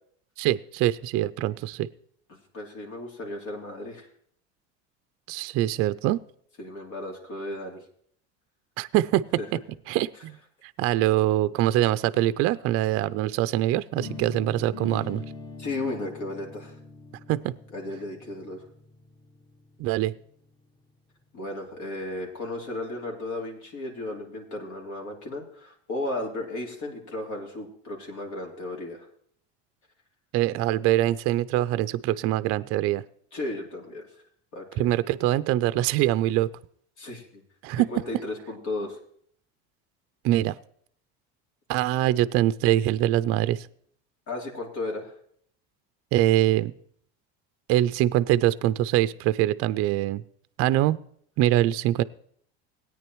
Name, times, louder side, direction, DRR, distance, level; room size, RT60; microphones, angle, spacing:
voice 1, 0.4-1.9 5.3-6.2 8.8-9.2 9.9-10.4 10.6-15.2 17.3-17.5 19.8-20.1 30.3-33.0 34.8-36.5 37.6-37.9 40.2-40.6 41.7-43.7 46.1-46.7 47.7-50.2 50.6-51.0 51.4-52.0, right 14 dB, 50° right, 15 dB, 0.4 m, -23 dB
voice 2, 2.3-4.1 6.6-7.8 9.4-9.5 15.6-16.7 17.7-18.6 21.3-29.1 33.3-34.1 34.5-34.9 37.0-37.4 37.8-39.0 44.3-45.1, left 2 dB, 70° left, 0 dB, 3.0 m, -34 dB
sound 1, 14.0-19.9, left 3 dB, 15° left, 0.8 m, -42 dB
17.0 x 9.3 x 3.0 m, 0.63 s
supercardioid pair, 125°, 31 cm